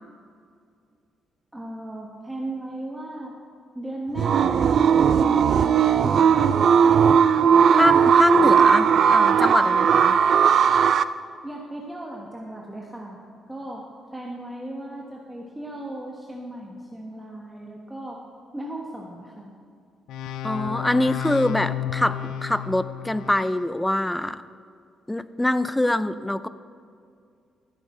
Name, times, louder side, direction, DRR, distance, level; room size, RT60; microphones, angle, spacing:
voice 1, 1.5-3.3 3.7-6.7 11.4-13.2 13.5-13.8 14.1-18.2 18.5-19.5, right 1 dB, 10° right, -2 dB, 1.3 m, -36 dB
sound 1, 4.2-11.0, right 7 dB, 60° right, 0.4 m, -17 dB
voice 2, 7.7-10.2 20.4-24.4 25.1-26.5, left 1 dB, 10° left, 14 dB, 0.4 m, -24 dB
sound 2, 20.1-23.7, left 10 dB, 85° left, 0.5 m, -32 dB
14.0 x 8.4 x 4.3 m, 2.3 s
cardioid pair, 90°, 0 cm